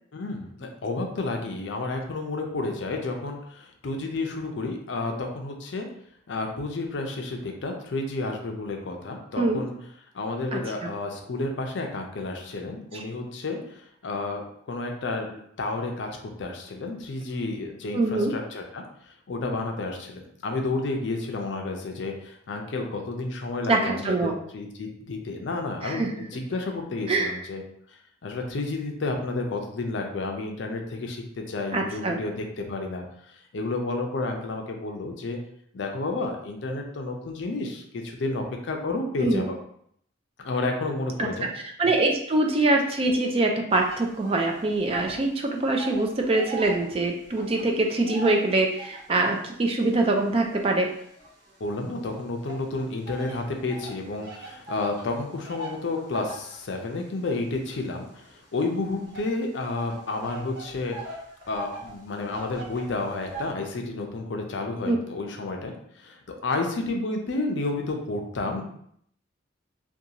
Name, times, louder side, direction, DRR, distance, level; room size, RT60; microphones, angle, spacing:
voice 1, 0.1-5.9 6.3-9.7 10.1-18.8 19.3-27.6 28.2-35.4 35.7-39.6 40.4-41.5 51.6-61.0 61.5-68.6, left 3 dB, 65° left, 3 dB, 0.4 m, -31 dB
voice 2, 10.5-10.9 12.9-13.0 17.9-18.3 23.7-24.4 25.8-26.1 27.1-27.4 31.7-32.2 39.2-39.5 41.2-41.3 41.8-50.9 64.8-65.0, right 2 dB, 30° right, 2 dB, 0.3 m, -24 dB
sound 1, 43.7-45.3 45.5-49.2 49.8-51.8 52.5-63.5, right 3 dB, 55° right, 0.7 m, -41 dB
2.5 x 2.3 x 2.8 m, 0.68 s
head